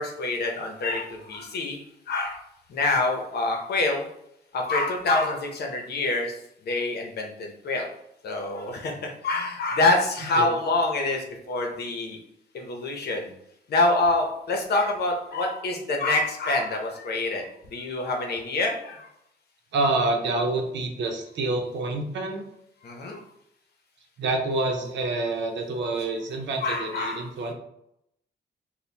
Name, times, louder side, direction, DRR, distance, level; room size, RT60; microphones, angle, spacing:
voice 1, 0.0-1.8 2.1-2.4 2.7-4.1 4.5-6.4 6.6-7.9 8.2-12.2 12.5-13.3 13.7-19.1 22.8-23.2 26.6-27.3, left 2 dB, 60° left, 2 dB, 0.8 m, -26 dB
voice 2, 19.7-22.4 24.2-27.5, right 2 dB, 80° right, 3 dB, 0.7 m, -27 dB
4.3 x 2.3 x 3.4 m, 0.78 s
wide cardioid pair, 170°, 19 cm